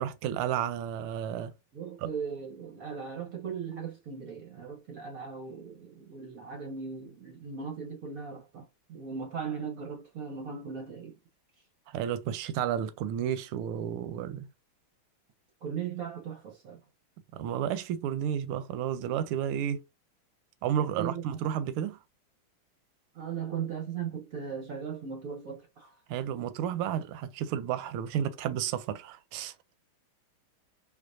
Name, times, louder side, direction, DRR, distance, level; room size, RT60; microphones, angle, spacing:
voice 1, 0.0-1.5 11.9-14.5 17.3-19.8 20.6-22.0 26.1-29.5, right 9 dB, 85° right, 1.5 m, -32 dB
voice 2, 1.7-11.1 15.6-16.8 21.0-21.4 23.1-25.9, right 6 dB, 65° right, 0.9 m, -38 dB
4.5 x 2.4 x 2.5 m
omnidirectional pair, 2.3 m